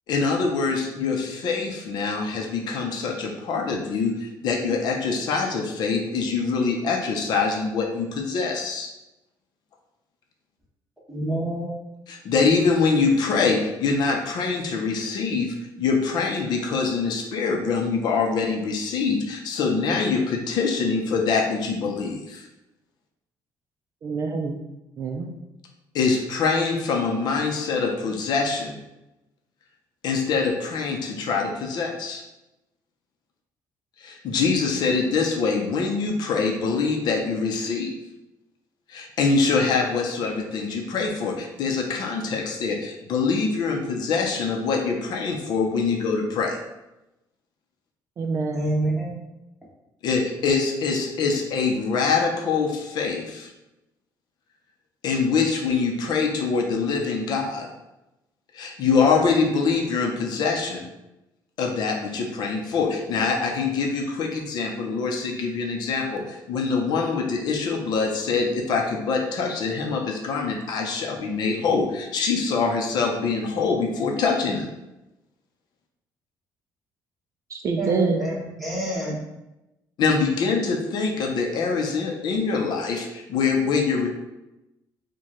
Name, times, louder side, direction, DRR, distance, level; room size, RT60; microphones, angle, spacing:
voice 1, 0.1-8.9 12.1-22.4 25.9-28.7 30.0-32.2 34.0-37.9 38.9-46.6 50.0-53.5 55.0-57.7 58.5-60.9 61.6-74.7 80.0-84.1, left 4 dB, 65° left, 2 dB, 0.6 m, -24 dB
voice 2, 11.1-11.7 48.5-49.1 77.8-79.2, right 1 dB, ahead, -6 dB, 1.3 m, -27 dB
voice 3, 24.0-24.6 25.0-25.3 48.2-48.7 77.5-78.2, right 4 dB, 40° right, 3 dB, 0.4 m, -26 dB
4.5 x 2.2 x 3.0 m, 0.95 s
cardioid pair, 120°, 8 cm